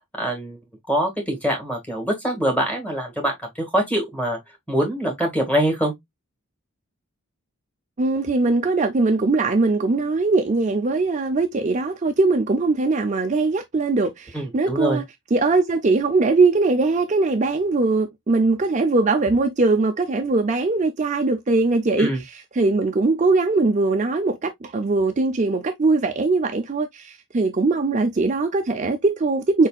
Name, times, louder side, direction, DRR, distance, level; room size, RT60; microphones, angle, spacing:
voice 1, 0.2-0.6 0.9-4.4 4.7-5.9 14.3-15.0 22.0-22.2, right 1 dB, 5° left, 1.7 m, -24 dB
voice 2, 8.0-15.0 15.3-29.7, right 3 dB, 35° right, 0.5 m, -21 dB
4.6 x 4.1 x 2.3 m
head